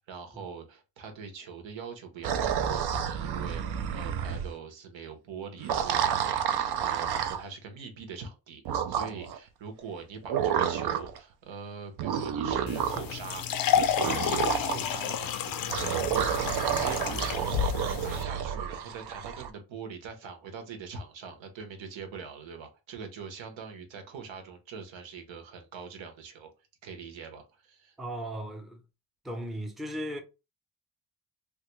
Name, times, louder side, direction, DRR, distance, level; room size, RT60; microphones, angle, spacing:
voice 1, 0.0-13.4 13.7-26.5 26.8-27.9, right 5 dB, 80° right, 1.0 m, -43 dB
sound 1, 2.2-4.5 5.6-7.4 8.7-9.4 10.3-11.2 12.0-13.1 13.8-14.8 15.7-19.5, right 8 dB, 60° right, 0.5 m, -30 dB
sound 2, 12.7-18.2, left 9 dB, 50° left, 0.5 m, -30 dB
voice 2, 28.0-28.8 29.2-30.2, equal, ahead, 0.5 m, -36 dB
3.3 x 2.3 x 3.0 m
cardioid pair, 100°, 45 cm